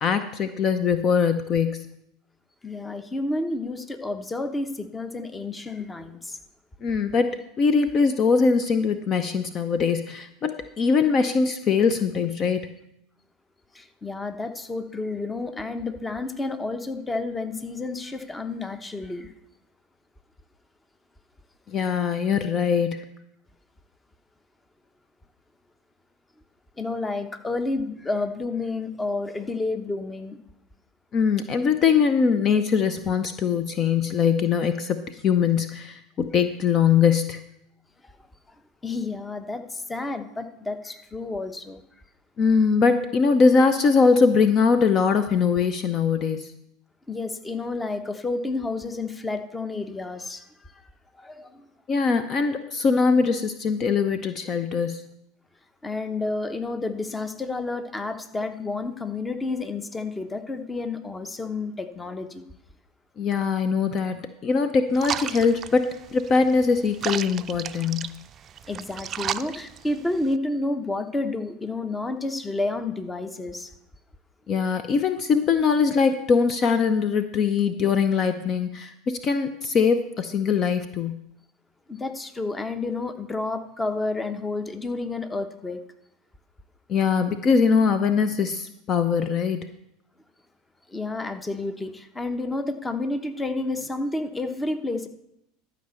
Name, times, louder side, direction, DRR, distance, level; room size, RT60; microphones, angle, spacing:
voice 1, 0.0-1.9 6.8-12.7 21.7-23.0 31.1-37.4 42.4-46.5 51.9-55.0 63.2-68.2 74.5-81.2 86.9-89.7, left 5 dB, 40° left, 10 dB, 0.7 m, -22 dB
voice 2, 2.6-6.4 13.7-19.3 26.8-30.4 38.0-38.1 38.8-41.8 47.1-50.8 51.2-51.7 55.8-62.5 68.7-73.7 81.9-85.8 90.9-95.1, left 2 dB, 15° left, 9 dB, 1.0 m, -30 dB
sound 1, 65.0-70.4, right 9 dB, 35° right, 0.5 m, -34 dB
12.5 x 5.2 x 6.9 m, 0.81 s
hypercardioid pair, 85°, 0 cm